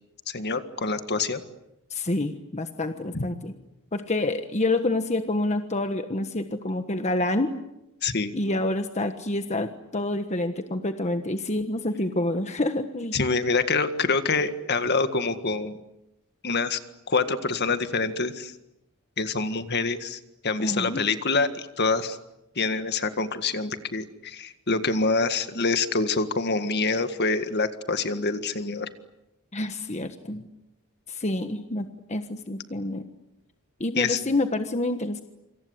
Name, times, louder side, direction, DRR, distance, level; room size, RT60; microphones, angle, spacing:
voice 1, 0.3-1.4 3.1-3.3 8.0-8.3 13.1-15.8 16.4-16.8 17.1-18.5 19.2-22.2 22.5-28.9 33.9-34.2, left 4 dB, 50° left, 10 dB, 1.8 m, -26 dB
voice 2, 1.9-3.5 3.9-7.5 8.3-13.1 20.6-21.0 29.5-30.5 31.1-33.0 33.8-35.2, left 2 dB, 30° left, 7 dB, 1.4 m, -28 dB
27.5 x 26.5 x 8.2 m, 0.91 s
head